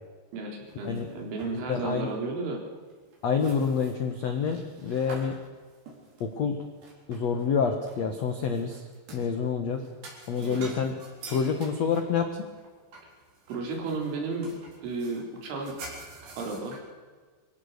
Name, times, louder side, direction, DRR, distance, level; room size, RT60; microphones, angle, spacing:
voice 1, 0.3-2.6 10.4-10.7 13.5-14.5 14.8-15.8 16.4-16.8, right 3 dB, 90° right, 1 dB, 6.1 m, -33 dB
sound 1, 0.6-1.9 2.1-2.3 2.9-7.5 7.8-9.3 9.8-16.8, right 2 dB, 50° right, 5.6 m, -47 dB
voice 2, 1.7-2.1 3.2-5.3 6.2-6.6 7.1-8.8 9.1-9.8 10.3-10.9 11.3-12.3, left 6 dB, 80° left, 6 dB, 1.5 m, -27 dB
24.5 x 16.5 x 6.8 m, 1.5 s
omnidirectional pair, 5.3 m